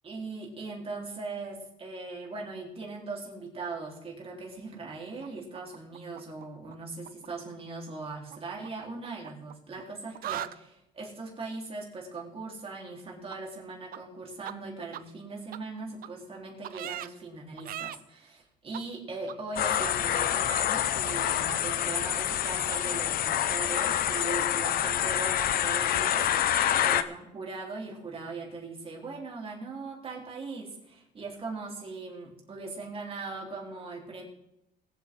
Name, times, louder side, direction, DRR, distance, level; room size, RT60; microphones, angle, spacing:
voice 1, 0.0-26.6 26.8-34.2, right 3 dB, 35° right, -2 dB, 4.1 m, -40 dB
sound 1, 5.2-6.7 7.0-7.3 8.3-9.8 10.1-10.6 13.3-13.4 13.9-14.0 14.4-14.5 14.9-15.0 15.5-15.6 16.0-16.1 16.6-17.1 17.6-18.0 18.7-18.8 19.3-19.4 19.8-19.9 20.2-20.8 21.1-21.2 21.5-21.6 21.9-22.0 22.3-22.4 22.7-22.8, right 12 dB, 60° right, 0.5 m, -39 dB
sound 2, 19.6-27.0, left 11 dB, 60° left, 0.8 m, -27 dB
21.5 x 8.1 x 3.9 m, 0.87 s
cardioid pair, 110°, 17 cm